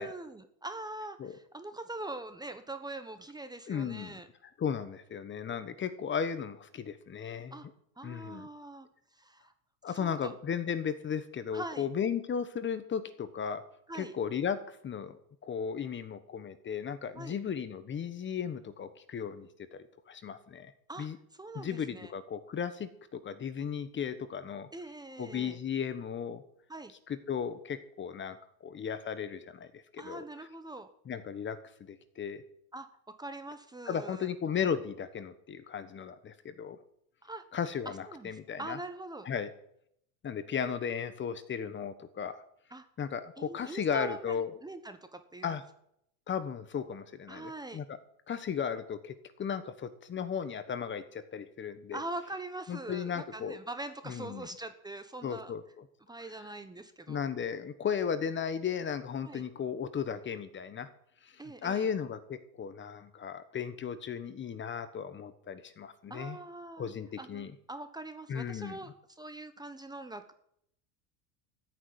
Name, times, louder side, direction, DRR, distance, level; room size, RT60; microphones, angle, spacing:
voice 1, 0.0-4.3 7.5-7.7 8.0-8.9 9.1-9.5 9.9-10.3 11.5-11.9 13.9-14.1 17.2-17.4 20.9-22.1 24.7-25.6 26.7-26.9 30.0-30.9 32.7-34.3 37.2-37.4 37.8-39.3 42.7-42.9 43.4-45.6 47.3-47.8 51.9-55.5 56.1-57.2 59.3-59.4 61.4-61.9 66.1-66.9 67.2-70.3, right 2 dB, 10° right, 9 dB, 1.1 m, -43 dB
voice 2, 3.7-4.2 4.6-7.6 8.0-8.5 9.8-13.6 13.9-15.2 15.4-20.7 21.0-21.2 21.5-24.7 25.2-26.4 27.1-30.2 31.1-31.6 31.9-32.4 33.8-36.8 37.5-38.8 39.2-39.5 40.2-42.4 43.0-44.5 45.4-45.6 46.3-48.0 48.3-52.0 52.7-53.6 54.1-54.5 55.2-55.8 57.1-60.9 61.2-61.3 61.6-66.4 66.8-67.5 68.3-68.8, left 7 dB, 25° left, 12 dB, 1.2 m, -35 dB
14.0 x 6.6 x 9.6 m, 0.71 s
supercardioid pair, 120°, 42 cm